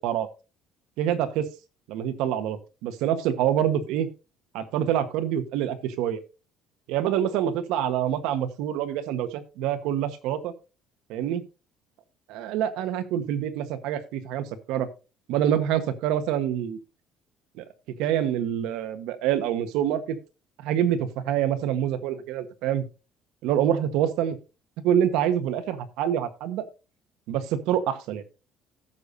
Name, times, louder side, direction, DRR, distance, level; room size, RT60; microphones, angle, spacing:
voice 1, 1.0-1.5 1.9-4.1 4.5-6.2 6.9-10.5 11.1-11.4 12.3-14.9 15.3-16.8 17.6-17.7 18.0-20.2 20.6-22.8 23.4-24.3 24.8-26.6 27.3-28.4, right 10 dB, 85° right, 10 dB, 1.2 m, -26 dB
16.5 x 6.8 x 2.6 m, 0.31 s
cardioid pair, 145°, 0 cm